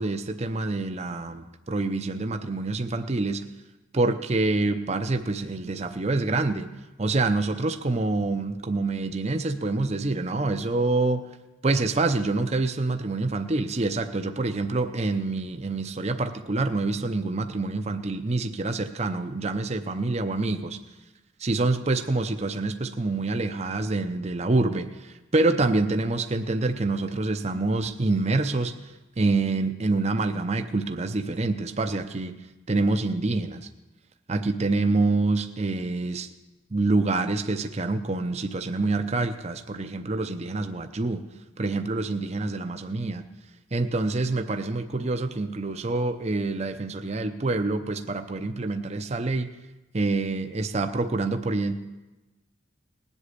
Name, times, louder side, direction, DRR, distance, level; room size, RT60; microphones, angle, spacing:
voice 1, 0.0-3.4 3.9-6.7 7.0-11.4 11.6-20.8 21.4-28.7 29.2-32.3 32.7-33.7 34.3-36.3 36.7-41.2 41.6-43.3 43.7-49.5 49.9-51.7, right 2 dB, 35° right, 8 dB, 0.6 m, -26 dB
19.5 x 8.1 x 8.3 m, 1.1 s
head